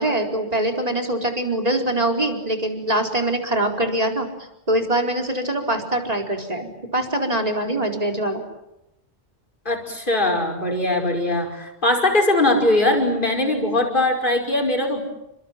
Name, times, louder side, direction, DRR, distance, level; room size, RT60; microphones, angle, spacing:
voice 1, 0.0-4.3 4.7-8.4, right 1 dB, 35° right, 3 dB, 4.5 m, -23 dB
voice 2, 9.7-15.0, left 1 dB, 50° left, 5 dB, 5.6 m, -20 dB
29.5 x 26.0 x 7.6 m, 0.89 s
omnidirectional pair, 1.1 m